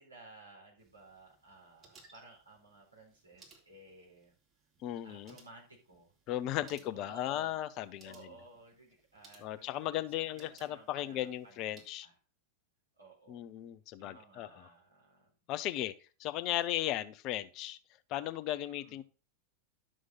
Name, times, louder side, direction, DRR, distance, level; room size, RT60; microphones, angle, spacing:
voice 1, 0.0-4.3 5.0-6.1 6.7-7.6 8.0-12.1 13.0-13.4 14.0-15.3 16.5-16.6 18.6-19.0, right 2 dB, 80° right, -2 dB, 4.1 m, -56 dB
sound 1, 0.8-11.9, right 3 dB, 30° right, 3.4 m, -64 dB
voice 2, 4.8-5.3 6.3-8.3 9.4-12.1 13.3-14.6 15.5-15.9 16.2-17.8 18.1-19.0, left 13 dB, 40° left, 15 dB, 0.7 m, -36 dB
11.0 x 6.3 x 4.0 m, 0.35 s
figure-of-eight pair, 90°, 0 cm